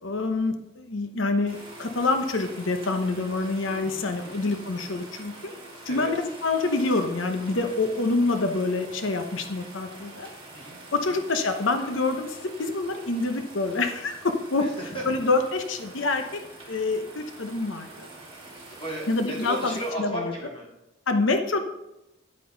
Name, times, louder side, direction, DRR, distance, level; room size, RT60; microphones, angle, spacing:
voice 1, 0.0-5.5 5.9-10.3 10.9-14.7 15.1-16.4 16.7-18.1 19.1-20.3 21.1-21.6, left 3 dB, 70° left, 6 dB, 0.8 m, -26 dB
sound 1, 1.5-19.9, right 2 dB, 25° right, 2.7 m, -45 dB
voice 2, 3.8-4.5 5.9-6.1 10.5-10.8 11.1-11.2 14.6-15.1 18.7-20.7, right 1 dB, 25° left, -5 dB, 3.3 m, -36 dB
10.0 x 8.7 x 3.9 m, 0.93 s
head